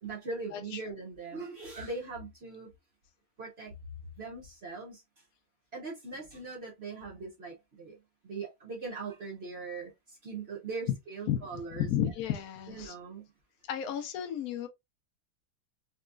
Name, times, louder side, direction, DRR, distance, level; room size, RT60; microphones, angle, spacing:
voice 1, 0.0-2.7 3.4-3.7 4.2-5.0 5.7-11.9 12.7-13.3, right 4 dB, 65° right, 0.6 m, -41 dB
voice 2, 0.5-1.0 10.9-11.0 11.3-12.9 13.7-14.7, left 10 dB, 85° left, 0.8 m, -33 dB
4.0 x 2.3 x 2.4 m
omnidirectional pair, 2.4 m